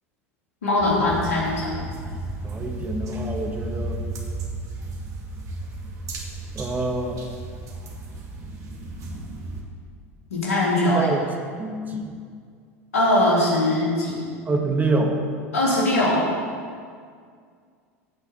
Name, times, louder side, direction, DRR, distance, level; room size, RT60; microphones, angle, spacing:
voice 1, 0.6-1.7 10.3-11.1 12.9-14.2 15.5-16.2, left 1 dB, 80° left, -5 dB, 3.7 m, -21 dB
sound 1, 0.8-9.6, right 2 dB, 45° right, 2.3 m, -34 dB
voice 2, 2.4-4.0 6.5-7.2 10.9-11.2 11.6-12.2 14.5-15.2, right 2 dB, 20° right, 2 dB, 1.8 m, -26 dB
16.0 x 5.6 x 6.9 m, 2.1 s
hypercardioid pair, 80°, 8 cm